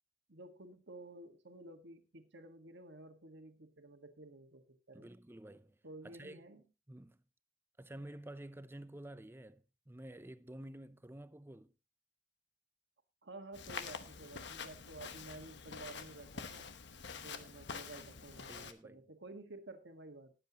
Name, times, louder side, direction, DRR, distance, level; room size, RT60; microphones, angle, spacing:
voice 1, 0.3-5.1 5.8-6.6 13.2-16.7 17.2-20.3, right 2 dB, 65° right, 1.6 m, -52 dB
voice 2, 4.9-6.4 6.9-7.2 7.8-11.8 18.5-19.0, right 1 dB, 10° right, 0.5 m, -51 dB
Walk footsteps, 13.5-18.7, left 5 dB, 65° left, 1.1 m, -47 dB
19.5 x 7.7 x 2.9 m
head